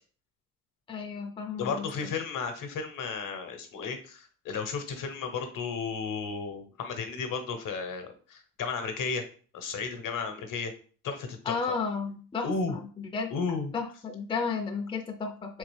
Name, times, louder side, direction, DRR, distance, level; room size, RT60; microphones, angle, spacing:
voice 1, 0.9-2.1 11.5-13.3 13.7-15.6, left 5 dB, 15° left, 4 dB, 0.5 m, -33 dB
voice 2, 1.6-9.2 9.5-10.7 11.0-11.5 12.4-12.8 13.3-13.7, left 5 dB, 55° left, 6 dB, 1.0 m, -33 dB
3.6 x 2.9 x 3.4 m, 0.41 s
supercardioid pair, 85°, 38 cm